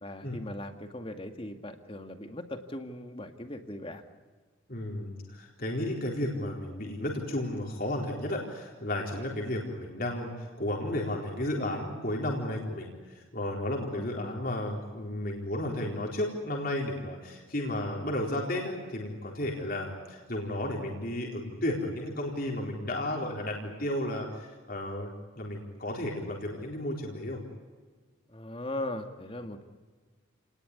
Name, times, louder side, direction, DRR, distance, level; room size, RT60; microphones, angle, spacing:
voice 1, 0.0-4.0 9.4-9.5 13.9-14.4 28.3-29.6, left 1 dB, 25° left, 6 dB, 2.0 m, -39 dB
voice 2, 4.7-27.4, left 1 dB, 45° left, 0 dB, 4.2 m, -33 dB
30.0 x 19.5 x 9.8 m, 1.4 s
head